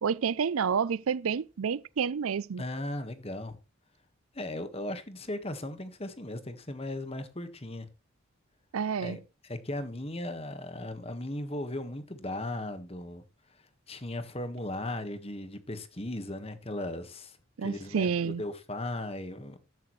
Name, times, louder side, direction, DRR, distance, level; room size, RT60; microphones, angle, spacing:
voice 1, 0.0-2.6 8.7-9.2 17.6-18.4, right 6 dB, 90° right, 0.5 m, -29 dB
voice 2, 2.6-3.6 4.3-7.9 9.0-13.2 13.9-19.6, left 1 dB, 30° left, 1.5 m, -37 dB
14.0 x 11.0 x 3.2 m
head